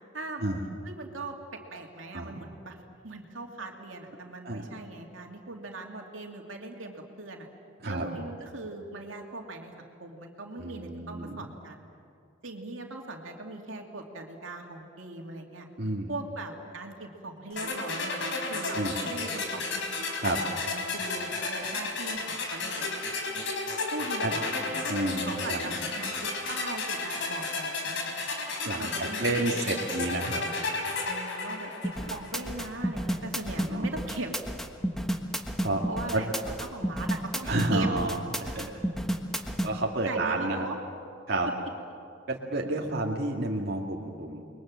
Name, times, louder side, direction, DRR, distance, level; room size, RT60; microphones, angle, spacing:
voice 1, 0.1-0.5 0.8-1.4 1.7-2.8 3.0-7.5 7.8-11.8 12.4-15.7 16.1-19.8 20.6-22.9 23.9-24.9 25.2-29.6 31.0-34.3 35.9-36.3 36.7-37.9 40.1-40.8, right 2 dB, 80° right, 2 dB, 2.8 m, -40 dB
voice 2, 10.6-11.4 15.8-16.1 18.7-19.0 20.2-20.4 24.2-24.3 24.9-25.7 28.6-30.4 33.6-33.8 35.6-35.8 36.1-36.3 37.5-38.7 39.6-40.7 41.3-41.5 42.3-44.4, right 2 dB, 55° right, -2 dB, 2.2 m, -30 dB
sound 1, 17.6-32.5, left 3 dB, 65° left, 4.2 m, -33 dB
sound 2, 31.8-39.7, equal, ahead, 1.4 m, -31 dB
30.0 x 22.0 x 7.6 m, 2.5 s
head